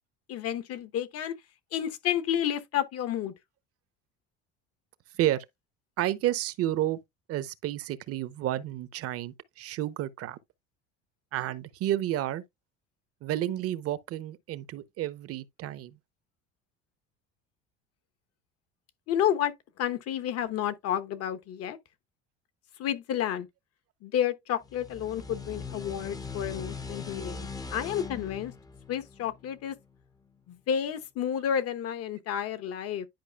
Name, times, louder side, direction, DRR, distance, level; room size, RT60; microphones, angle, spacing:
voice 1, 0.3-1.3 1.7-3.3 19.1-19.5 19.8-21.8 22.8-23.5 24.0-28.5 28.9-29.8 30.5-33.1, left 10 dB, 55° left, 1.0 m, -30 dB
voice 2, 6.0-7.0 7.3-10.4 11.3-12.4 13.2-16.0, right 13 dB, 55° right, 0.8 m, -31 dB
sound 1, 24.6-30.0, left 4 dB, 15° left, 0.6 m, -41 dB
10.5 x 4.8 x 2.3 m
supercardioid pair, 95°, 29 cm